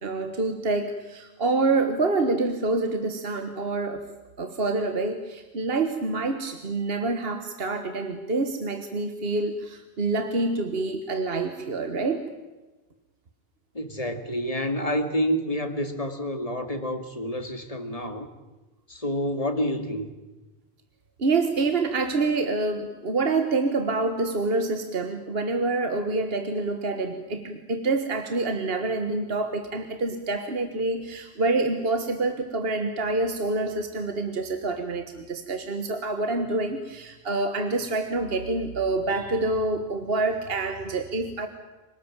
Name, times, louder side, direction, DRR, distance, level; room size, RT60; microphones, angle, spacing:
voice 1, 0.0-4.0 4.4-12.3 21.2-41.5, right 3 dB, 60° right, 7 dB, 1.7 m, -27 dB
voice 2, 13.7-18.3 18.9-20.1, equal, 35° left, 7 dB, 2.4 m, -28 dB
26.5 x 19.0 x 9.0 m, 1.1 s
omnidirectional pair, 1.1 m